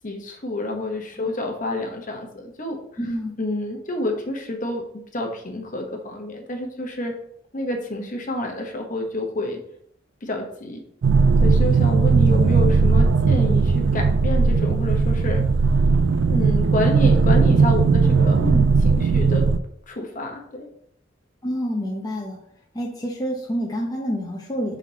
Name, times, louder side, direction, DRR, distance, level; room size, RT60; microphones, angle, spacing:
voice 1, 0.0-2.8 3.4-4.8 5.1-7.2 7.5-9.6 10.2-10.8 11.4-15.4 16.3-18.4 18.8-19.5 19.9-20.7, left 1 dB, 45° left, 3 dB, 1.0 m, -28 dB
voice 2, 3.0-3.3 18.4-18.7 21.4-22.4 22.7-24.8, equal, 20° left, -2 dB, 0.7 m, -28 dB
sound 1, 11.0-19.6, right 4 dB, 70° right, 0.4 m, -17 dB
5.9 x 4.1 x 4.1 m, 0.69 s
head